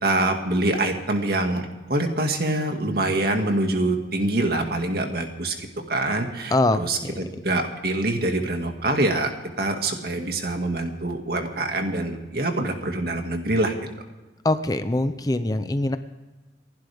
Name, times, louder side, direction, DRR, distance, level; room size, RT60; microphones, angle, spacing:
voice 1, 0.0-9.3 9.6-13.7, right 2 dB, 60° right, 4 dB, 2.1 m, -25 dB
voice 2, 6.5-7.1 14.4-16.0, left 2 dB, 20° left, 11 dB, 0.6 m, -23 dB
28.5 x 11.5 x 3.6 m, 1.2 s
head